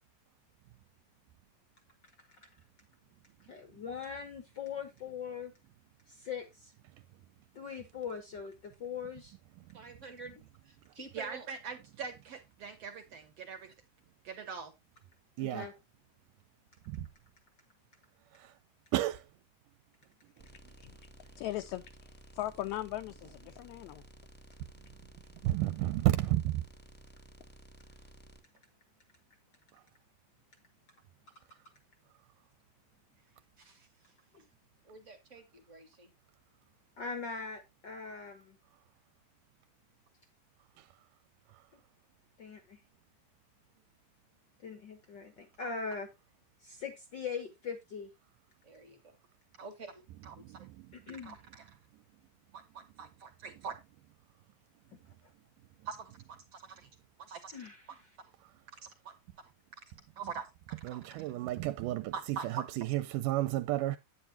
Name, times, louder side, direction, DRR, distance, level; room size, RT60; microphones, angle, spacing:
voice 1, 3.4-5.5 6.1-6.7 7.5-9.4 15.4-15.7 34.3-34.4 37.0-38.6 42.4-42.8 44.6-46.1 46.6-48.1 50.9-51.4 55.2-55.3 57.5-58.1, left 6 dB, 65° left, 1.1 m, -41 dB
voice 2, 9.6-11.5 27.9-28.1 34.8-36.1 48.6-49.2 49.6-50.0 50.3-50.5, right 3 dB, 30° right, 1.5 m, -50 dB
voice 3, 11.1-13.7 14.2-14.7 33.6-33.9 45.6-45.7 49.6-49.7 50.3-50.4 51.2-51.7 52.5-53.8 55.9-56.1 56.5-56.9 57.2-57.7 59.0-59.1 60.2-60.5 60.9-61.0 62.1-62.6, right 6 dB, 65° right, 1.7 m, -43 dB
voice 4, 15.4-15.7 16.9-17.1 18.3-18.5 18.9-19.3 25.4-26.7 40.8-40.9 50.6-50.7 60.8-64.0, right 15 dB, 80° right, 2.1 m, -31 dB
sound 1, 20.4-28.4, right 1 dB, 15° left, 0.4 m, -55 dB
voice 5, 21.4-24.0, left 14 dB, 80° left, 1.7 m, -39 dB
9.7 x 9.1 x 2.8 m
omnidirectional pair, 3.8 m